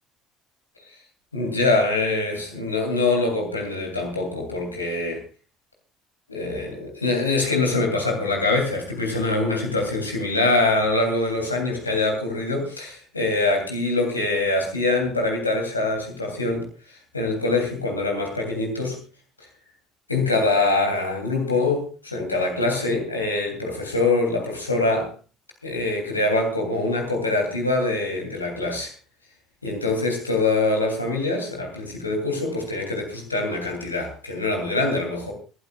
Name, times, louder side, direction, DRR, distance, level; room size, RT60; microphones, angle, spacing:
voice 1, 1.3-5.2 6.3-16.7 17.1-19.0 20.1-25.1 25.6-28.9 29.6-35.3, left 2 dB, 85° left, 1 dB, 3.1 m, -24 dB
25.0 x 12.0 x 2.4 m, 0.35 s
figure-of-eight pair, 55°, 0 cm